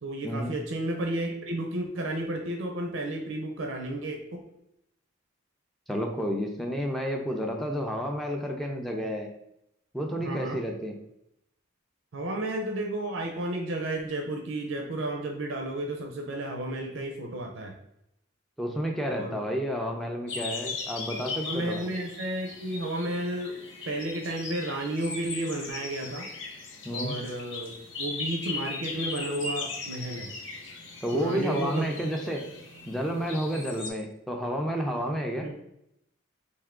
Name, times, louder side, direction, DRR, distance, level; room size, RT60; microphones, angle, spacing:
voice 1, 0.0-4.4 10.2-10.6 12.1-17.7 19.0-19.4 21.5-23.5 23.9-26.3 26.9-30.3 31.1-31.8 35.4-35.6, right 1 dB, 70° right, 2 dB, 0.5 m, -32 dB
voice 2, 5.9-9.3 9.9-11.0 18.6-21.9 26.8-27.2 31.0-32.5 32.9-35.5, equal, ahead, 1 dB, 0.3 m, -30 dB
sound 1, 20.3-33.9, left 4 dB, 65° left, 0.8 m, -38 dB
3.4 x 2.6 x 3.6 m, 0.80 s
head